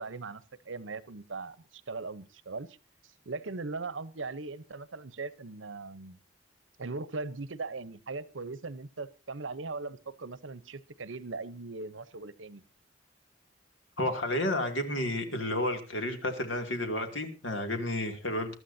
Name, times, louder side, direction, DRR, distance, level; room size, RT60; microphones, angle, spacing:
voice 1, 0.0-2.8 3.3-6.2 6.8-12.6, right 3 dB, 85° right, 16 dB, 0.9 m, -39 dB
voice 2, 14.0-18.5, left 1 dB, 80° left, 5 dB, 2.6 m, -31 dB
22.5 x 12.5 x 2.7 m, 0.34 s
head